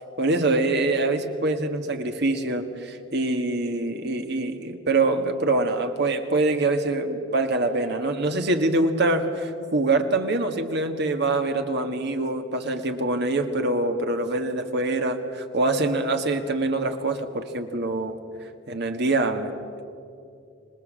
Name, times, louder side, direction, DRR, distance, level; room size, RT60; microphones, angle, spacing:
voice 1, 0.2-18.2 18.7-19.5, right 2 dB, 60° right, 6 dB, 1.8 m, -24 dB
26.0 x 19.5 x 7.6 m, 2.5 s
head